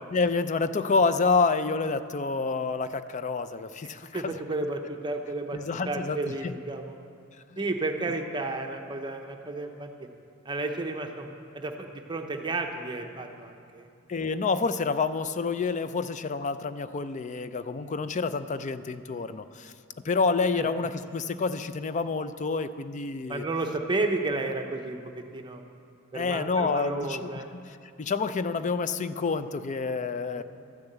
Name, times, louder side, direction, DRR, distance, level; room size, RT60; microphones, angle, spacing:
voice 1, 0.1-4.4 5.5-6.5 14.1-19.7 20.0-23.4 26.1-27.3 27.6-27.7 28.0-30.4, left 4 dB, 35° left, 12 dB, 0.4 m, -28 dB
voice 2, 4.1-5.6 5.9-7.0 7.6-9.9 10.4-11.3 11.5-13.9 17.8-17.9 20.5-20.7 23.3-25.6 26.1-27.5 30.3-30.4, right 2 dB, 20° right, 4 dB, 0.7 m, -32 dB
12.5 x 6.9 x 8.0 m, 2.4 s
head